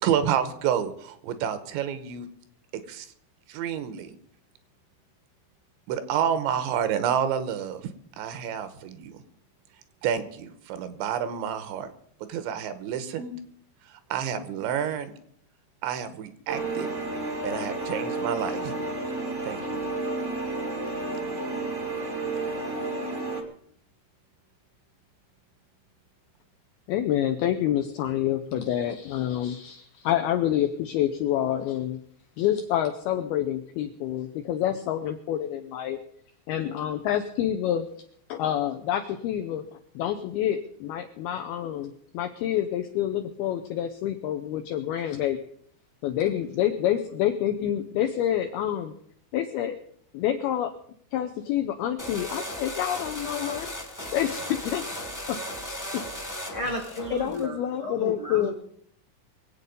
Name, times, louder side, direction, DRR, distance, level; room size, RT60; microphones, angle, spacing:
voice 1, 0.0-2.3 2.7-3.1 3.5-4.2 5.9-7.8 8.2-9.2 10.0-11.9 12.3-13.4 14.1-15.1 15.8-16.9 17.4-18.7 19.4-19.6, right 9 dB, 80° right, 11 dB, 3.2 m, -29 dB
sound 1, 16.5-23.4, right 2 dB, 60° right, 0.7 m, -31 dB
voice 2, 26.9-32.0 32.4-36.0 36.5-37.9 38.3-45.4 46.0-48.9 49.3-49.8 50.1-50.7 51.1-53.7 54.1-54.9 55.3-56.1 56.6-56.8 57.1-58.5, left 11 dB, 80° left, 6 dB, 2.2 m, -28 dB
sound 2, 52.0-57.4, equal, 15° left, 0.5 m, -36 dB
voice 3, 56.5-58.5, left 1 dB, 50° left, 2 dB, 1.6 m, -33 dB
24.0 x 8.4 x 5.3 m, 0.65 s
omnidirectional pair, 5.3 m